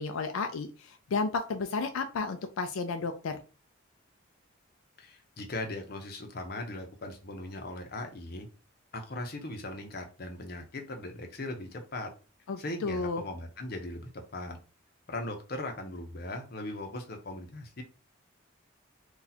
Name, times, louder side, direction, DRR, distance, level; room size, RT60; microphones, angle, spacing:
voice 1, 0.0-3.4 12.5-13.2, left 4 dB, 85° left, 7 dB, 0.4 m, -32 dB
voice 2, 5.0-8.5 8.9-12.1 12.6-14.6 15.1-17.8, left 2 dB, 45° left, 3 dB, 0.7 m, -39 dB
2.7 x 2.3 x 4.0 m, 0.34 s
head